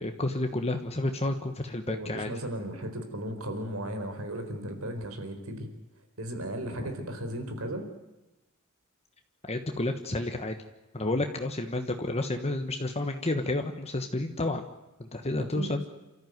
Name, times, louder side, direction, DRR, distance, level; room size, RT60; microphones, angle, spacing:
voice 1, 0.0-2.3 6.7-6.9 9.5-10.6 10.9-14.6 15.0-15.8, left 2 dB, 30° left, 6 dB, 1.3 m, -30 dB
voice 2, 1.9-5.7 6.2-7.9 15.4-15.7, right 1 dB, 90° right, 6 dB, 4.4 m, -36 dB
28.5 x 14.0 x 9.4 m, 1.1 s
head